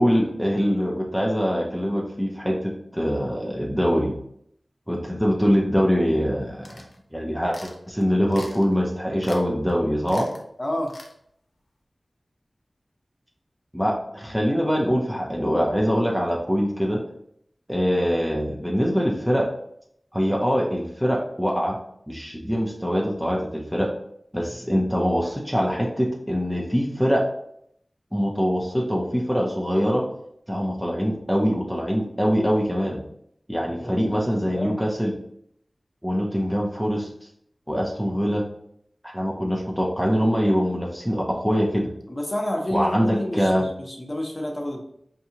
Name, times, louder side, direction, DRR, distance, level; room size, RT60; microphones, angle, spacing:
voice 1, 0.0-4.1 4.9-10.3 13.7-17.0 17.7-19.4 20.1-21.8 22.1-23.9 24.3-27.2 28.1-30.0 30.5-33.0 33.5-35.1 36.0-37.1 37.7-38.4 39.0-41.9 42.7-43.7, equal, ahead, -1 dB, 0.6 m, -23 dB
sound 1, 6.6-7.0 7.5-7.8 8.3-8.7 9.2-9.4 9.7-9.8 10.1-10.4 10.9-11.1, left 2 dB, 75° left, 0.6 m, -43 dB
voice 2, 10.6-10.9 24.5-24.6 33.6-34.8 38.0-38.1 42.1-44.8, left 1 dB, 30° left, 0 dB, 0.8 m, -30 dB
4.6 x 2.7 x 2.8 m, 0.71 s
wide cardioid pair, 55°, 0 cm